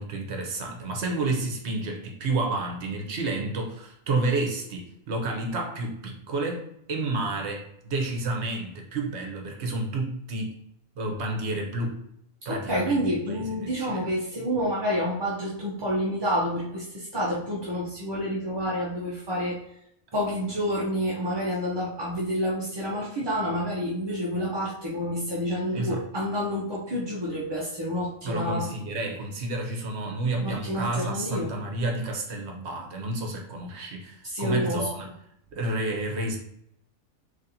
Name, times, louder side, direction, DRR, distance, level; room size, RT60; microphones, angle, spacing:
voice 1, 0.0-10.5 11.0-12.0 12.4-14.0 25.7-26.0 28.2-35.1 35.5-36.4, right 2 dB, 60° right, 2 dB, 1.0 m, -30 dB
voice 2, 12.5-19.6 20.1-28.7 30.4-31.5 34.2-34.9, equal, 30° right, -6 dB, 0.5 m, -28 dB
3.9 x 3.1 x 2.7 m, 0.75 s
omnidirectional pair, 1.3 m